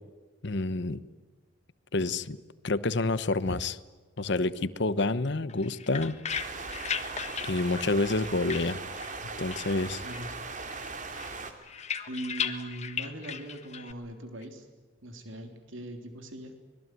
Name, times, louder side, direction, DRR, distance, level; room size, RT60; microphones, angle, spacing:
voice 1, 0.4-1.0 1.9-2.4 2.6-3.8 4.2-6.2 7.4-8.8 9.4-10.0, left 2 dB, 60° left, 15 dB, 1.0 m, -28 dB
sound 1, 5.5-9.2 9.5-10.4 10.7-13.9, left 7 dB, 35° left, 1.6 m, -37 dB
sound 2, 6.3-11.5, right 4 dB, 40° right, 2.9 m, -39 dB
voice 2, 12.1-14.7 15.0-16.5, right 1 dB, 75° right, 5 dB, 3.6 m, -40 dB
25.5 x 21.5 x 9.4 m, 1.3 s
head